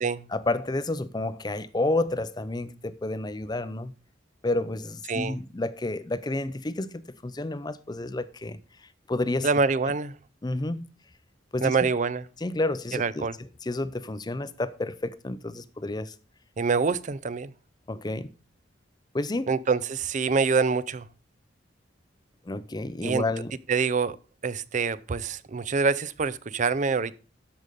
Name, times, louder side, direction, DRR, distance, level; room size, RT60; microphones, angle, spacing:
voice 1, 0.3-3.9 4.4-9.5 10.4-10.9 11.5-11.8 12.4-16.1 17.9-18.3 19.1-19.5 22.4-23.6, left 2 dB, 20° left, 0.5 m, -30 dB
voice 2, 9.4-10.1 11.6-12.2 13.0-13.3 16.6-17.5 19.5-21.1 23.0-23.2 23.7-24.2 24.4-27.2, right 4 dB, 40° right, 0.5 m, -25 dB
13.0 x 5.3 x 5.2 m
head